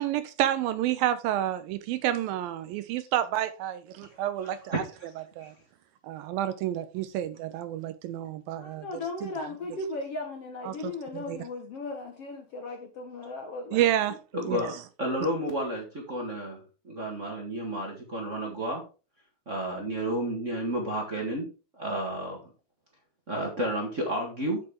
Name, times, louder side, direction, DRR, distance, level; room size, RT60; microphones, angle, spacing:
voice 1, 0.0-4.8 5.4-5.5 6.0-8.9 9.2-9.3 10.7-11.4 13.7-14.2 14.5-14.6, right 12 dB, 80° right, 2.1 m, -29 dB
voice 2, 4.4-5.1 5.4-5.5 14.3-18.8 19.4-21.5 21.8-22.4 23.3-24.6, right 1 dB, 40° right, 1.0 m, -31 dB
voice 3, 8.6-13.8, left 2 dB, 70° left, 1.4 m, -37 dB
8.9 x 7.5 x 3.6 m
omnidirectional pair, 4.6 m